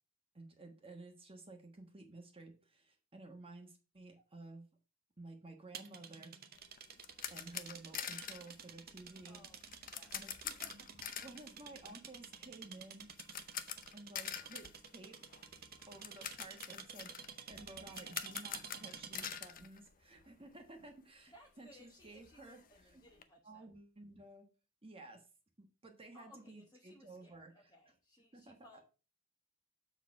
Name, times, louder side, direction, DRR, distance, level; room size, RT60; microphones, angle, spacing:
voice 1, 0.3-4.7 5.2-6.3 7.3-9.4 10.1-10.3 11.2-13.1 13.9-15.2 15.9-22.6 22.9-23.0 23.4-24.5 24.8-25.2 25.6-27.5 28.3-28.8, right 2 dB, 25° right, 3 dB, 1.3 m, -54 dB
sound 1, 5.7-19.5, right 7 dB, 45° right, 0.9 m, -52 dB
sound 2, 6.6-20.5 20.8-20.9 21.3-21.4 21.7-23.2, left 9 dB, 40° left, 0.7 m, -47 dB
voice 2, 9.3-10.2 10.4-10.9 21.3-23.7 26.1-28.8, left 1 dB, 20° left, -1 dB, 1.1 m, -62 dB
7.0 x 4.2 x 5.8 m, 0.34 s
head